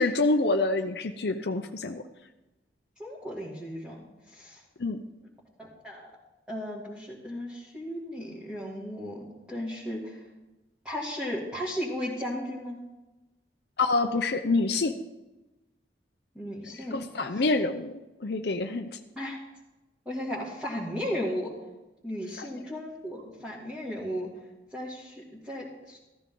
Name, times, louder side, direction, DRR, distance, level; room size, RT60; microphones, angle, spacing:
voice 1, 0.0-2.0 4.8-5.0 13.8-14.9 16.9-17.9 18.2-18.9, left 3 dB, 60° left, 6 dB, 0.7 m, -26 dB
voice 2, 3.0-4.6 5.6-6.1 6.5-10.2 10.8-12.8 16.3-17.0 17.3-17.5 19.2-19.4 20.1-21.5 22.0-24.3 24.7-26.0, equal, 5° right, -7 dB, 2.3 m, -35 dB
15.5 x 13.5 x 3.8 m, 1.0 s
head